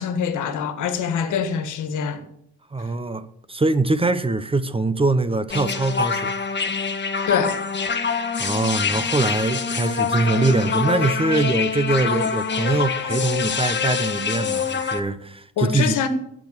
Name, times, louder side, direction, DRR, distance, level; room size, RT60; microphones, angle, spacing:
voice 1, 0.0-2.2 7.3-7.6 15.6-16.1, left 7 dB, 80° left, 1.6 m, -24 dB
voice 2, 2.7-6.3 8.4-16.0, right 2 dB, 20° right, 0.9 m, -23 dB
sound 1, 5.5-15.0, left 5 dB, 35° left, 1.4 m, -25 dB
16.0 x 6.2 x 6.7 m
cardioid pair, 90°, 30 cm